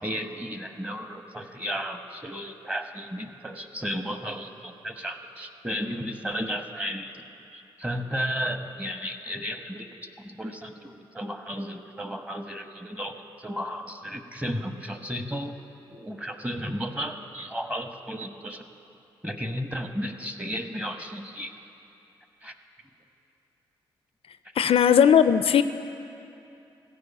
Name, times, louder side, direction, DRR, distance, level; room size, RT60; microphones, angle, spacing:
voice 1, 0.0-7.2 7.5-9.9 10.2-15.6 15.9-18.6 19.2-21.5 22.4-22.5 24.6-24.7, equal, 10° right, 6 dB, 1.1 m, -34 dB
voice 2, 24.6-25.6, left 8 dB, 60° left, 12 dB, 0.4 m, -18 dB
15.5 x 5.3 x 8.4 m, 2.8 s
hypercardioid pair, 40°, 11 cm